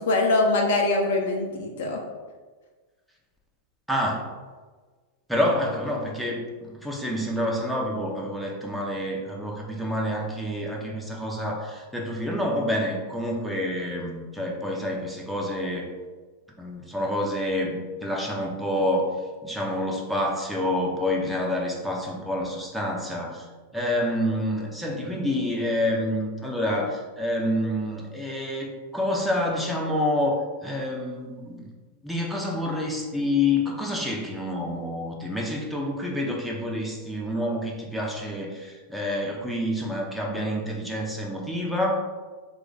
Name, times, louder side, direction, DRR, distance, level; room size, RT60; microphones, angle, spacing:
voice 1, 0.0-2.0, left 2 dB, 55° left, 1 dB, 0.5 m, -23 dB
voice 2, 3.9-4.3 5.3-15.9 16.6-19.1 19.4-23.5 23.7-31.7 32.0-41.9, left 1 dB, ahead, -2 dB, 0.6 m, -28 dB
3.1 x 2.4 x 3.7 m, 1.4 s
figure-of-eight pair, 90°, 0 cm